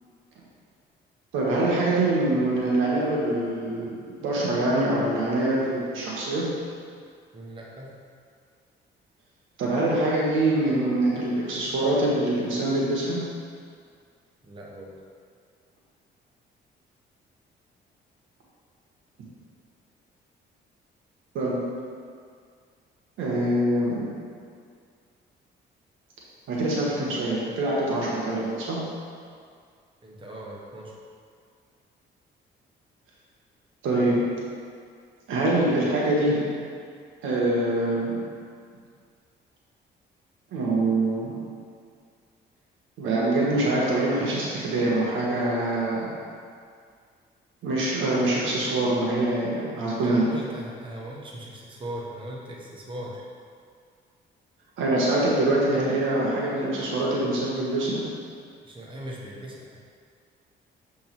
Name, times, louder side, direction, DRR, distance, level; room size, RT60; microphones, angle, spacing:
voice 1, 1.3-6.5 9.6-13.2 21.3-21.6 23.2-24.1 26.5-28.8 33.8-34.2 35.3-36.4 37.2-38.2 40.5-41.4 43.0-46.1 47.6-50.3 54.8-58.0, right 1 dB, 85° right, -5 dB, 1.5 m, -24 dB
voice 2, 7.3-7.9 14.4-14.9 30.0-30.9 50.0-53.2 58.6-59.8, right 1 dB, 25° right, -4 dB, 1.3 m, -38 dB
7.0 x 3.8 x 4.6 m, 2.2 s
cardioid pair, 90°, 20 cm